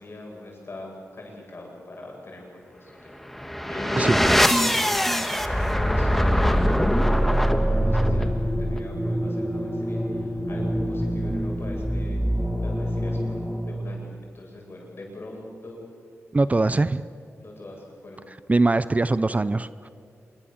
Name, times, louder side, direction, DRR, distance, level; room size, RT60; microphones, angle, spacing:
voice 1, 0.0-3.1 3.7-4.4 4.7-4.9 5.5-7.3 7.6-12.2 12.6-15.8 17.4-18.2, left 1 dB, 50° left, -1 dB, 8.0 m, -40 dB
sound 1, 3.2-14.0, equal, 5° left, 1.6 m, -23 dB
voice 2, 16.3-17.0 18.3-19.9, right 2 dB, 30° right, 15 dB, 0.6 m, -22 dB
26.0 x 23.0 x 7.4 m, 2.4 s
wide cardioid pair, 80°, 5 cm